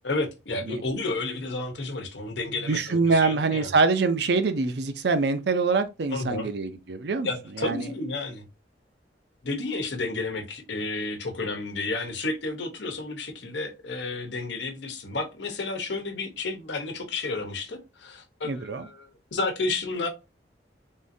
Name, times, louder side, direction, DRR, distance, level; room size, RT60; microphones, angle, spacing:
voice 1, 0.0-3.7 6.1-6.5 7.2-8.5 9.4-20.1, left 3 dB, 85° left, 0.9 m, -31 dB
voice 2, 2.7-7.3 7.6-7.9 18.4-18.9, right 4 dB, 65° right, 0.5 m, -24 dB
3.6 x 2.6 x 2.6 m
head